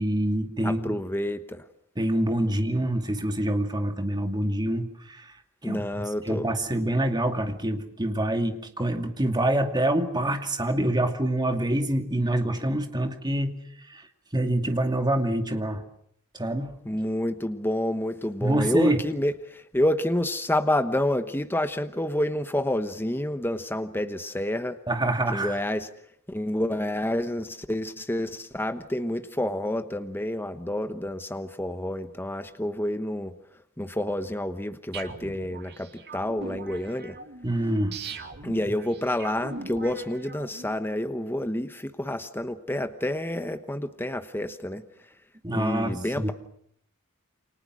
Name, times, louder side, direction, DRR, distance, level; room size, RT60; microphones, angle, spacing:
voice 1, 0.0-1.0 2.0-5.3 5.6-13.5 13.9-14.0 14.3-15.8 16.3-16.7 18.4-19.0 24.9-25.6 37.4-38.0 45.4-46.3, right 1 dB, 20° right, 5 dB, 2.5 m, -26 dB
voice 2, 0.6-1.6 5.6-6.5 16.8-24.8 25.3-25.9 26.3-33.4 33.8-37.2 38.4-44.8 45.5-46.3, left 1 dB, 10° left, 9 dB, 1.0 m, -29 dB
sound 1, 34.9-40.7, right 3 dB, 50° right, 2.5 m, -41 dB
29.5 x 26.0 x 6.3 m, 0.69 s
head